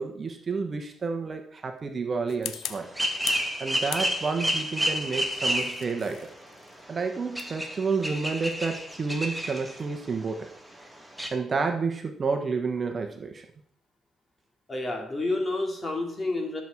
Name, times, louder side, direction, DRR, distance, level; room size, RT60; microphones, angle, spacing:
voice 1, 0.0-2.9 3.6-6.3 6.9-10.5 11.3-13.5, right 4 dB, 40° right, 5 dB, 1.3 m, -30 dB
sound 1, 2.3-3.5 3.9-4.5 5.2-10.0, left 11 dB, 85° left, 0.6 m, -41 dB
sound 2, 2.7-6.1 6.5-6.6 6.9-7.0 7.3-9.8 10.1-10.2 10.5-10.6 10.8-10.9 11.2-11.3, equal, 5° right, 2.0 m, -30 dB
voice 2, 14.7-16.6, left 2 dB, 25° left, 2 dB, 3.2 m, -29 dB
12.0 x 7.3 x 4.7 m, 0.66 s
cardioid pair, 90°, 0 cm